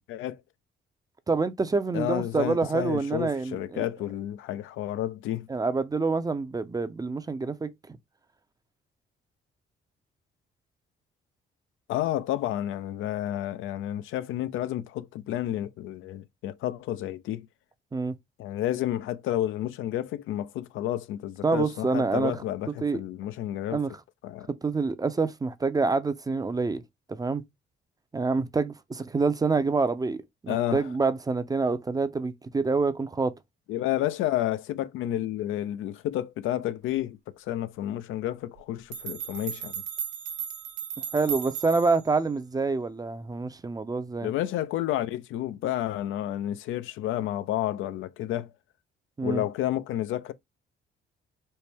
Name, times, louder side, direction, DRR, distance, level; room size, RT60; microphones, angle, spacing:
voice 1, 0.1-0.4 1.9-5.5 11.9-17.5 18.4-23.8 24.2-24.5 30.5-30.9 33.7-39.7 44.2-48.5 49.2-50.3, left 13 dB, 85° left, 0.4 m, -30 dB
voice 2, 1.3-3.9 5.5-8.0 17.9-18.1 21.4-22.4 22.8-23.0 23.7-24.0 24.6-26.8 27.1-27.4 28.1-33.4 41.1-44.3 49.2-49.4, right 4 dB, 20° right, 0.4 m, -27 dB
sound 1, 38.6-38.7 38.9-42.1, right 8 dB, 85° right, 0.7 m, -35 dB
4.3 x 2.0 x 3.3 m
cardioid pair, 90°, 20 cm